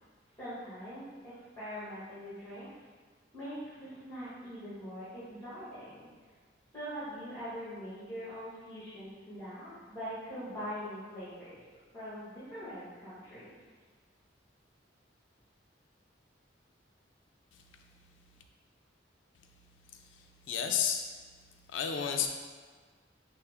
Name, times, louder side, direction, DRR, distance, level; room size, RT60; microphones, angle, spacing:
voice 1, 0.4-2.7 3.3-6.1 6.7-11.6 11.9-13.5, equal, 15° left, -14 dB, 1.4 m, -42 dB
voice 2, 19.9-21.1 21.7-22.3, left 7 dB, 80° left, 5 dB, 0.3 m, -32 dB
5.5 x 2.0 x 3.4 m, 1.5 s
head